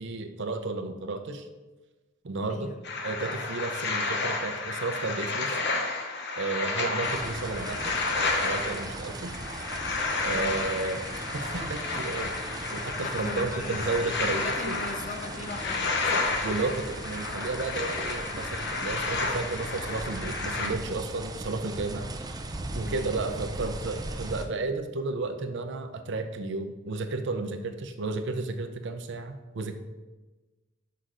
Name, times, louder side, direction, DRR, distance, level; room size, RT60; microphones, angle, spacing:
voice 1, 0.0-1.5 2.2-2.7 3.0-5.6 6.4-9.4 10.2-11.1 11.3-12.3 12.7-14.9 16.4-22.1 22.7-29.7, right 3 dB, 60° right, 8 dB, 0.6 m, -33 dB
voice 2, 2.5-2.8 10.3-10.6 13.0-13.9 14.3-16.5 22.8-23.1, left 3 dB, 35° left, 8 dB, 0.5 m, -39 dB
sound 1, 2.8-20.7, left 3 dB, 55° left, 0.8 m, -31 dB
sound 2, 7.0-24.5, right 2 dB, 20° right, 0.4 m, -38 dB
6.5 x 5.6 x 3.8 m, 1.2 s
head